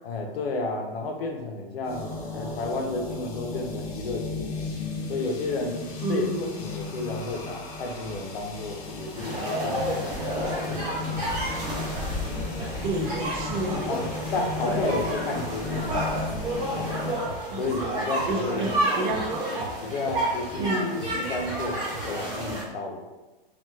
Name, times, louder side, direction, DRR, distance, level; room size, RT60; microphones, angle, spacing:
voice 1, 0.0-2.1 2.3-4.8 5.1-11.3 12.3-12.5 13.9-14.1 14.3-16.2 16.8-17.0 17.6-18.7 19.8-20.8 21.1-23.1, left 3 dB, 85° left, 2 dB, 0.6 m, -32 dB
sound 1, 1.8-17.1, left 3 dB, 40° left, 0.5 m, -36 dB
voice 2, 6.0-6.6 12.8-13.9 14.6-14.8 17.5-17.6 18.3-19.5 20.6-21.1, right 1 dB, 60° right, 1 dB, 0.6 m, -29 dB
sound 2, 9.1-22.6, right 1 dB, 15° right, 0.7 m, -30 dB
2.9 x 2.3 x 2.2 m, 1.1 s
supercardioid pair, 160°, 29 cm